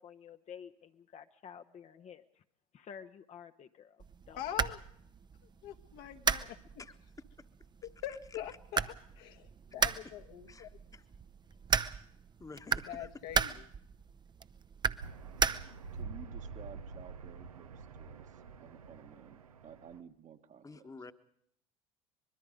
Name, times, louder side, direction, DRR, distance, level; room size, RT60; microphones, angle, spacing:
voice 1, 0.0-2.4 2.7-4.4, left 7 dB, 40° left, 0.9 m, -51 dB
sound 1, 4.0-16.0, right 6 dB, 25° right, 0.7 m, -36 dB
voice 2, 4.3-4.8 5.6-6.6 8.0-10.7 12.9-13.5, left 11 dB, 60° left, 1.5 m, -43 dB
voice 3, 10.5-11.0 12.4-13.1 20.6-21.1, left 4 dB, 20° left, 1.3 m, -50 dB
sound 2, 15.0-20.0, right 4 dB, 85° right, 1.0 m, -47 dB
voice 4, 15.9-20.9, right 8 dB, 45° right, 1.5 m, -54 dB
24.5 x 21.5 x 5.2 m
hypercardioid pair, 70°, 18 cm